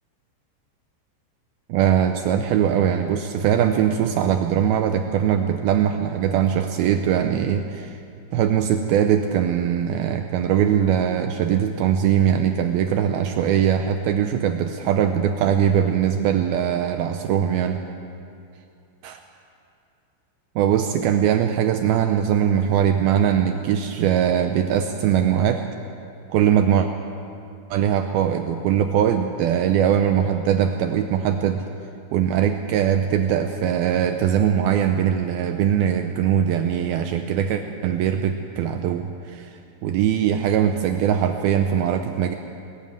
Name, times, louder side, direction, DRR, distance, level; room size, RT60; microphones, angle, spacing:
voice 1, 1.7-8.0 8.3-17.8 19.0-19.2 20.6-25.6 26.3-26.9 27.7-31.6 32.1-39.5 39.8-42.3, right 9 dB, 85° right, 6 dB, 2.1 m, -21 dB
20.0 x 14.5 x 9.3 m, 2.6 s
omnidirectional pair, 5.2 m